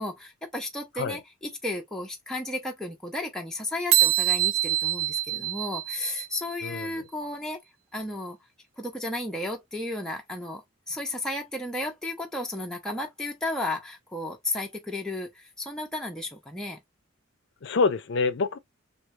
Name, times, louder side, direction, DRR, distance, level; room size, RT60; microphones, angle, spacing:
voice 1, 0.0-7.6 7.9-8.4 8.8-10.6 10.9-16.8, left 1 dB, 5° left, 0.4 m, -33 dB
sound 1, 3.9-6.5, right 13 dB, 80° right, 0.5 m, -25 dB
voice 2, 6.6-6.9 17.6-18.6, left 4 dB, 55° left, 0.4 m, -26 dB
2.7 x 2.3 x 3.0 m
head